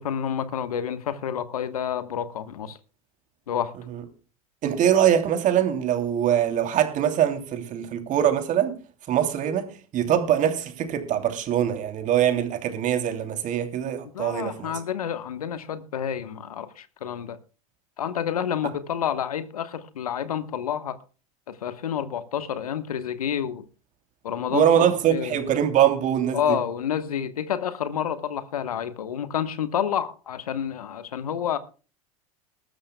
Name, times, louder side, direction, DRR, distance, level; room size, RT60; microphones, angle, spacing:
voice 1, 0.0-2.8 3.5-3.7 14.1-17.4 18.0-21.0 21.5-23.6 24.2-25.5 26.3-31.6, left 9 dB, 85° left, 1.3 m, -29 dB
voice 2, 4.6-8.8 9.1-9.7 9.9-14.7 24.5-26.6, right 10 dB, 45° right, 2.9 m, -23 dB
21.0 x 13.0 x 2.2 m
hypercardioid pair, 90°, 19 cm